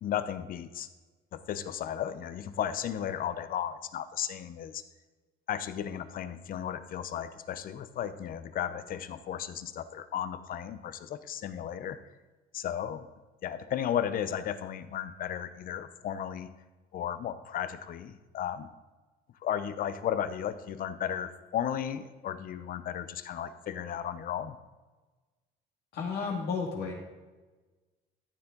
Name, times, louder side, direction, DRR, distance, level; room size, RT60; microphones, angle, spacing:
voice 1, 0.0-0.9 1.3-4.8 5.5-12.0 12.5-13.1 13.4-16.5 16.9-18.7 19.4-24.6, left 9 dB, 55° left, 12 dB, 0.8 m, -34 dB
voice 2, 25.9-26.9, left 5 dB, 70° left, -2 dB, 2.3 m, -32 dB
13.5 x 7.1 x 3.9 m, 1.3 s
cardioid pair, 110°, 17 cm